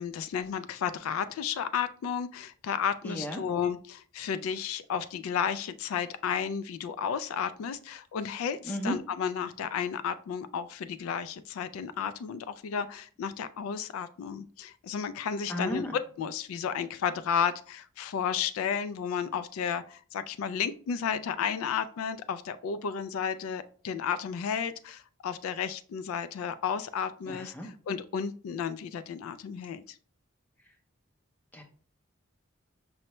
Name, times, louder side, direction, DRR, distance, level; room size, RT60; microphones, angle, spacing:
voice 1, 0.0-30.0, left 7 dB, 85° left, 12 dB, 0.3 m, -33 dB
voice 2, 3.0-3.4 8.7-8.9 15.5-16.0 27.3-27.7 31.5-31.6, equal, 10° left, 3 dB, 0.5 m, -34 dB
5.4 x 2.1 x 2.9 m, 0.43 s
head